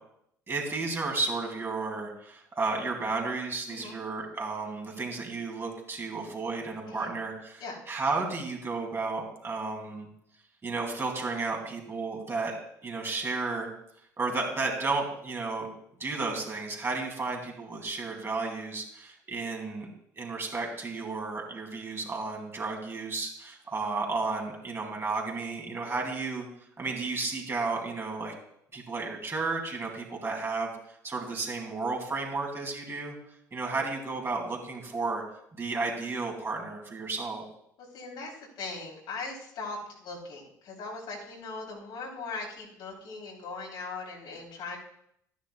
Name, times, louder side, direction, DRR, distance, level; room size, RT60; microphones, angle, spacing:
voice 1, 0.5-10.1 10.6-12.5 12.8-13.7 14.2-15.7 16.0-19.9 20.2-26.5 26.8-28.3 28.7-30.7 31.0-33.2 33.5-35.2 35.6-37.5, right 3 dB, 25° right, 0 dB, 2.8 m, -33 dB
voice 2, 37.8-44.8, left 3 dB, 50° left, -1 dB, 3.3 m, -39 dB
14.0 x 10.0 x 2.3 m, 0.72 s
figure-of-eight pair, 55°, 10 cm